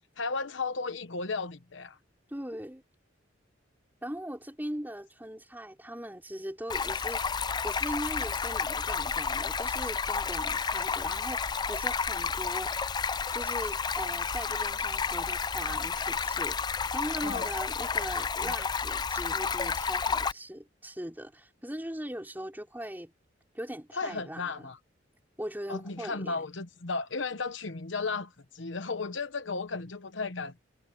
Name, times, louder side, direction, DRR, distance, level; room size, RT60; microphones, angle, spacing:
voice 1, 0.2-2.0 17.2-17.5 18.4-18.5 23.9-24.8 25.7-30.5, left 4 dB, 70° left, 1.1 m, -34 dB
voice 2, 2.3-2.8 4.0-7.2 7.6-12.9 13.3-23.1 23.5-24.7 25.4-26.4, equal, 10° right, 5.1 m, -40 dB
Stream, 6.7-20.3, left 5 dB, 20° left, 0.4 m, -31 dB
head